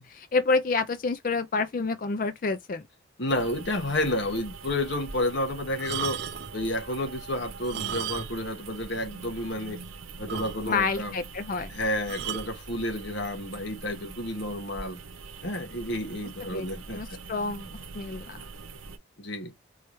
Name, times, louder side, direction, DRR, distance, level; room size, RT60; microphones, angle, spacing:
voice 1, 0.0-2.8 10.7-11.7 16.4-16.7 16.9-18.4, left 4 dB, 45° left, 0.4 m, -28 dB
voice 2, 3.2-6.2 6.5-9.8 10.2-11.1 11.7-15.0 15.4-17.2 19.2-19.5, left 1 dB, 60° left, 1.4 m, -30 dB
sound 1, 3.3-19.0, right 4 dB, 85° right, 0.8 m, -44 dB
sound 2, 5.7-6.6 7.5-8.5 8.8-8.9 9.5-9.6 9.8-9.9 10.3-10.9 12.1-12.5 13.4-13.6, right 8 dB, 55° right, 0.5 m, -35 dB
4.6 x 3.0 x 3.2 m
head